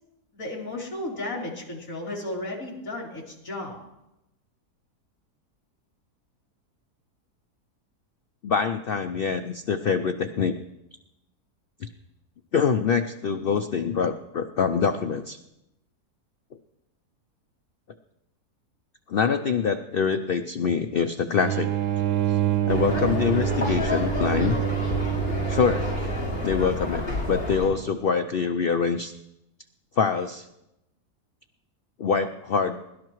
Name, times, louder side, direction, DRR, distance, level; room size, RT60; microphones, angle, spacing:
voice 1, 0.3-3.8, left 2 dB, 55° left, -5 dB, 3.7 m, -34 dB
voice 2, 8.4-10.5 11.8-11.9 12.5-15.4 19.1-21.7 22.3-22.4 22.7-24.6 25.5-25.8 26.4-29.1 30.0-30.5 32.0-32.8, left 6 dB, 85° left, 7 dB, 0.5 m, -25 dB
sound 1, 21.4-26.8, right 11 dB, 65° right, 0.6 m, -27 dB
sound 2, 22.7-27.7, left 2 dB, 35° left, 5.9 m, -30 dB
22.5 x 12.0 x 3.1 m, 0.88 s
omnidirectional pair, 1.7 m